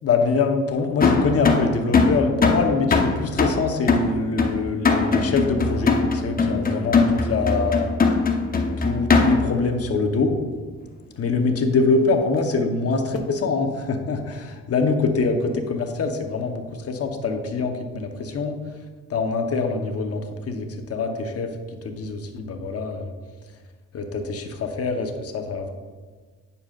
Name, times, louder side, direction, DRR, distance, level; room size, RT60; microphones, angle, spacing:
voice 1, 0.0-7.9 8.8-10.3 11.2-18.6 19.1-21.5 21.8-23.1 23.9-25.7, left 4 dB, 50° left, 4 dB, 1.0 m, -24 dB
sound 1, 1.0-9.6, left 4 dB, 30° left, 0.8 m, -21 dB
8.7 x 6.8 x 2.5 m, 1.5 s
cardioid pair, 90°, 30 cm